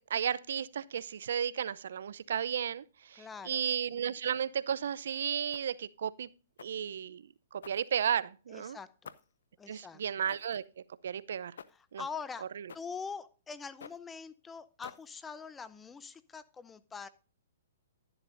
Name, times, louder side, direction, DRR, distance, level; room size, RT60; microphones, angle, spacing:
voice 1, 0.0-6.3 6.6-7.2 7.5-8.8 9.7-10.6 11.0-11.5 11.9-12.0, right 8 dB, 70° right, 0.5 m, -33 dB
voice 2, 3.1-3.7 8.5-9.1 9.6-10.0 11.7-12.5 12.7-17.1, left 5 dB, 10° left, 0.6 m, -44 dB
sound 1, 5.5-5.9 6.6-6.9 7.6-8.3 9.0-9.4 10.3-10.7 11.6-11.9 12.7-13.0 13.8-14.1 14.8-15.3, left 7 dB, 75° left, 0.6 m, -51 dB
11.5 x 10.5 x 2.6 m
hypercardioid pair, 140°, 0 cm